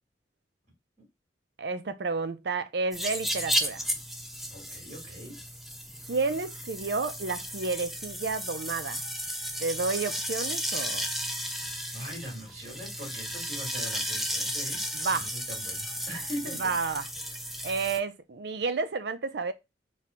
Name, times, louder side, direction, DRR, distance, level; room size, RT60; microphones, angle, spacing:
voice 1, 1.6-3.8 6.1-9.0 9.6-11.1 14.9-15.3 16.6-17.1 17.6-19.5, right 4 dB, 65° right, 0.5 m, -31 dB
sound 1, 2.9-18.0, equal, ahead, 0.5 m, -34 dB
voice 2, 4.5-5.4 11.9-17.0, equal, 40° right, 2.3 m, -41 dB
4.2 x 2.3 x 4.3 m
head